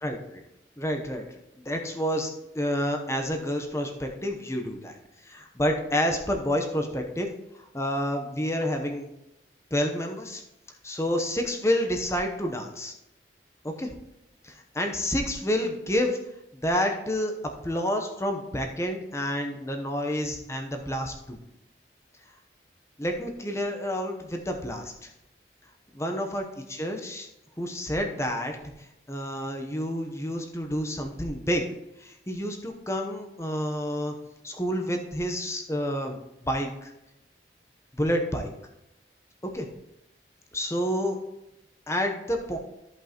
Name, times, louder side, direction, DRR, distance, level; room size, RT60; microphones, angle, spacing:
voice 1, 0.0-0.4 0.8-1.2 1.6-2.3 2.5-4.9 5.3-7.3 7.5-9.1 9.7-10.4 10.8-12.9 13.6-13.9 14.4-16.2 16.5-17.3 17.6-21.4 23.0-25.1 26.0-26.4 26.7-27.3 27.6-28.6 29.1-31.7 32.0-34.1 34.4-36.9 37.9-38.5 39.5-39.7 40.5-41.2 41.9-42.6, equal, 15° left, 3 dB, 0.9 m, -29 dB
14.0 x 5.4 x 3.0 m, 0.90 s
head